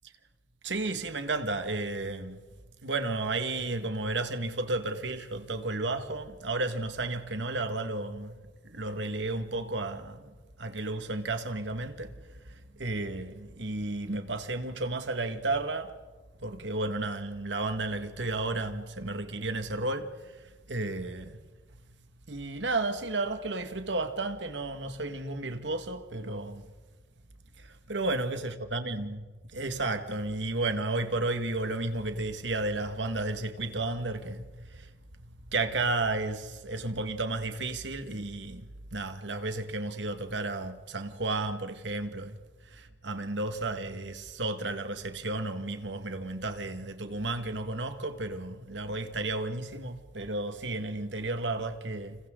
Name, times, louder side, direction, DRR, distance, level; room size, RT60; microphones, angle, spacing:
voice 1, 0.6-2.4 2.8-8.4 8.6-15.9 16.4-21.4 22.3-26.7 27.6-29.2 29.5-34.9 35.2-42.4 42.6-52.2, right 2 dB, 85° right, 1.9 m, -33 dB
29.5 x 28.0 x 3.9 m
head